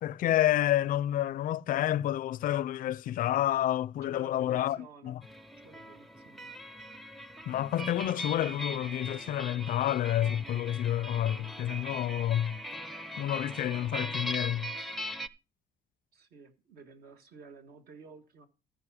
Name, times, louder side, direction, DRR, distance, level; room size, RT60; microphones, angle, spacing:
voice 1, 0.0-4.8 5.0-5.2 7.5-12.6 13.2-14.7, left 12 dB, 55° left, 0.4 m, -29 dB
voice 2, 4.0-5.2 5.6-6.5 16.1-18.5, right 4 dB, 65° right, 1.7 m, -53 dB
sound 1, 5.2-15.3, equal, ahead, 0.5 m, -40 dB
14.0 x 5.3 x 4.9 m
cardioid pair, 110°, 17 cm